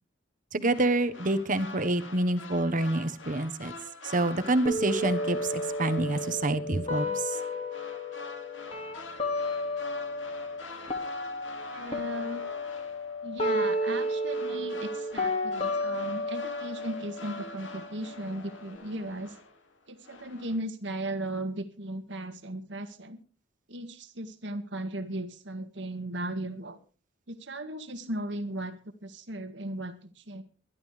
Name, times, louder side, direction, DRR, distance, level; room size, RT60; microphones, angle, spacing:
voice 1, 0.5-3.7 4.0-7.4, right 2 dB, 45° right, 11 dB, 1.3 m, -27 dB
sound 1, 0.6-19.7 20.0-20.6, left 2 dB, 90° left, 2.5 m, -46 dB
sound 2, 4.6-10.6 10.9-18.7, left 1 dB, 35° left, 2.3 m, -33 dB
voice 2, 11.7-12.4 13.2-19.4 19.9-23.2 23.7-26.8 27.3-28.8 29.0-30.4, right 1 dB, 70° right, 7 dB, 1.9 m, -36 dB
23.0 x 11.5 x 3.4 m, 0.33 s
head